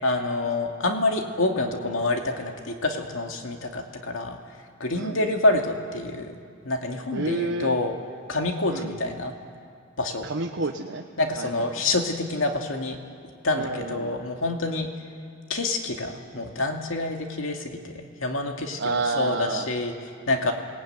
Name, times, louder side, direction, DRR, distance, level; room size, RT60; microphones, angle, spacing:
voice 1, 0.0-4.4 4.8-6.3 6.6-8.0 8.3-9.3 10.0-10.3 11.2-13.0 13.4-14.9 15.5-20.5, left 2 dB, 75° left, 3 dB, 2.4 m, -27 dB
voice 2, 4.9-5.3 7.1-7.8 8.7-8.9 10.2-11.1 11.4-11.9 13.5-14.2 18.8-19.7 20.4-20.5, right 3 dB, 65° right, 1 dB, 1.2 m, -30 dB
28.5 x 19.0 x 9.4 m, 2.3 s
head